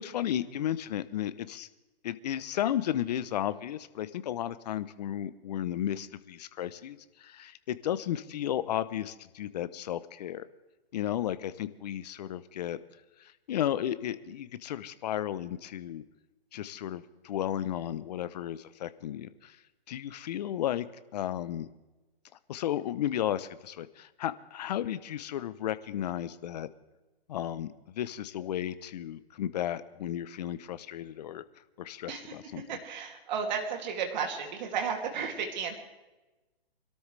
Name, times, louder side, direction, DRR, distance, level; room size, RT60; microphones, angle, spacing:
voice 1, 0.0-1.7 2.0-10.5 10.9-12.8 13.2-16.0 16.5-19.6 19.9-20.9 21.1-21.7 22.5-26.7 27.3-31.4 31.8-32.8, left 11 dB, 40° left, 14 dB, 0.8 m, -34 dB
voice 2, 32.7-35.8, right 6 dB, 45° right, 2 dB, 2.6 m, -33 dB
26.0 x 13.0 x 3.3 m, 1.1 s
hypercardioid pair, 150°, 32 cm